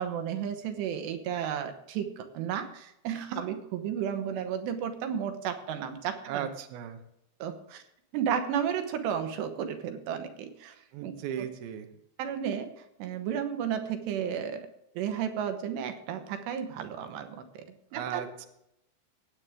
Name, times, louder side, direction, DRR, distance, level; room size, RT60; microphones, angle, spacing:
voice 1, 0.0-6.5 7.4-7.8 8.1-10.8 11.0-11.5 12.2-14.7 15.0-17.5 17.9-18.3, right 8 dB, 90° right, 7 dB, 3.2 m, -33 dB
voice 2, 6.3-7.0 10.9-11.9 17.9-18.5, right 9 dB, 70° right, 6 dB, 2.7 m, -36 dB
19.5 x 8.7 x 3.5 m, 0.80 s
omnidirectional pair, 4.8 m